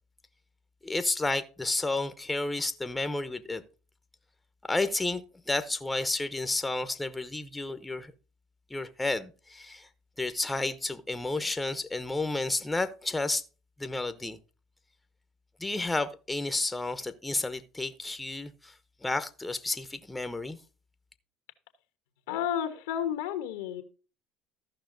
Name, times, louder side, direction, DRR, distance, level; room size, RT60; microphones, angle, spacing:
voice 1, 0.8-3.6 4.7-8.1 8.7-9.9 10.2-13.4 13.8-14.4 15.6-18.7 19.0-20.6, left 2 dB, 10° left, 0.9 m, -31 dB
voice 2, 22.3-23.8, left 9 dB, 90° left, 1.2 m, -31 dB
14.0 x 5.7 x 3.9 m
supercardioid pair, 85°, 0 cm